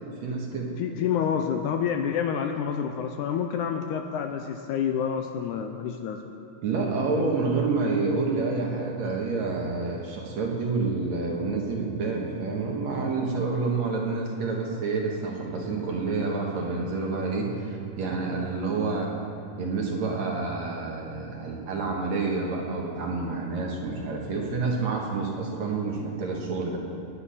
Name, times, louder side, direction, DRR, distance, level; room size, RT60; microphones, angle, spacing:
voice 1, 0.2-0.7 6.6-19.1 19.6-26.8, right 4 dB, 60° right, -1 dB, 2.5 m, -28 dB
voice 2, 0.8-6.2 7.1-7.3, left 8 dB, 80° left, 5 dB, 1.9 m, -28 dB
17.0 x 9.8 x 5.7 m, 2.5 s
omnidirectional pair, 4.0 m